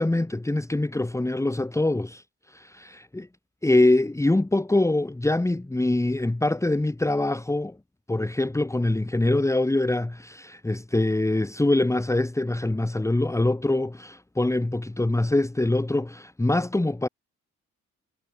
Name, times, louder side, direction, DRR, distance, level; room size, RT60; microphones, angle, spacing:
voice 1, 0.0-3.3 3.6-7.8 8.1-17.1, left 2 dB, 10° left, 1.7 m, -24 dB
cardioid pair, 90°, 30 cm